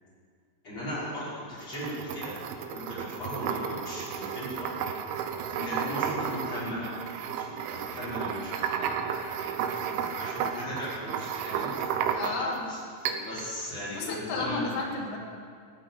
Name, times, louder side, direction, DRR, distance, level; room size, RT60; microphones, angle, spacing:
voice 1, 0.6-2.3 2.7-4.9 5.5-6.9 7.2-12.1 12.7-12.8 13.0-14.7, equal, 25° left, -9 dB, 6.1 m, -38 dB
sound 1, 1.6-12.6 13.1-13.5, right 8 dB, 85° right, 3.4 m, -33 dB
voice 2, 5.6-5.9 12.1-12.7 13.9-15.2, left 3 dB, 75° left, -1 dB, 5.1 m, -33 dB
14.0 x 9.5 x 9.8 m, 2.2 s
omnidirectional pair, 5.3 m